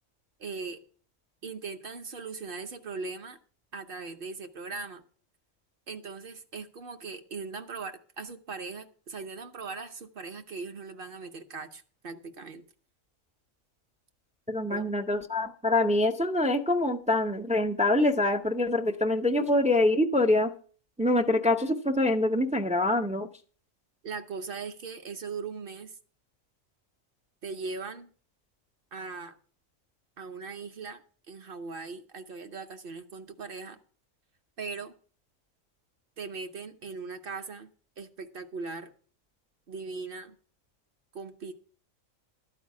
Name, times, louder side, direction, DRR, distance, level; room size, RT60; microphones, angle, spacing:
voice 1, 0.4-0.8 1.4-3.4 3.7-5.0 5.9-12.6 14.7-14.8 24.0-25.9 27.4-28.1 28.9-29.4 30.2-31.0 31.3-33.8 34.6-34.9 36.2-37.7 38.0-38.9 39.7-40.4 41.1-41.5, right 4 dB, 50° right, 0.9 m, -39 dB
voice 2, 14.5-20.5 21.0-23.3, left 2 dB, 10° right, 0.3 m, -25 dB
11.5 x 4.8 x 8.3 m
omnidirectional pair, 1.4 m